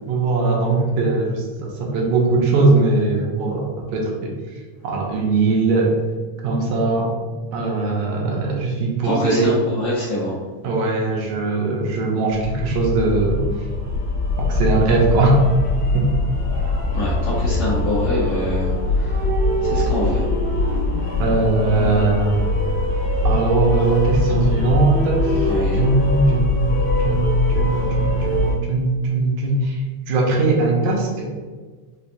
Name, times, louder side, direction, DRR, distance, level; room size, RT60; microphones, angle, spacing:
voice 1, 0.1-4.3 4.8-5.9 6.4-7.1 7.5-9.5 10.6-13.4 14.5-15.4 15.9-16.1 21.2-22.4 23.2-31.3, right 3 dB, 80° right, -1 dB, 1.9 m, -20 dB
voice 2, 9.0-10.4 16.9-19.3 19.6-20.2 25.4-25.8, left 1 dB, 70° left, -8 dB, 1.4 m, -25 dB
sound 1, 12.3-28.5, left 2 dB, 45° left, 1.5 m, -22 dB
5.3 x 2.3 x 2.5 m, 1.4 s
omnidirectional pair, 3.4 m